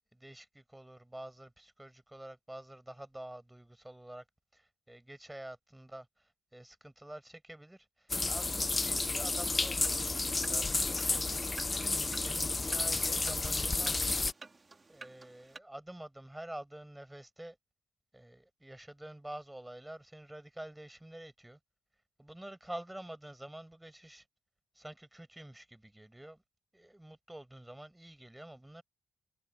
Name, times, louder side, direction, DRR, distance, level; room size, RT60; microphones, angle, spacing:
voice 1, 0.1-4.2 4.5-14.3 14.9-17.6 18.1-21.6 22.2-24.2 24.7-26.4 26.7-28.8, right 1 dB, 10° right, 6.6 m, -48 dB
sound 1, 8.1-14.3, left 3 dB, 20° left, 0.8 m, -31 dB
sound 2, 9.8-15.6, right 3 dB, 25° right, 2.6 m, -52 dB
cardioid pair, 90°, 0 cm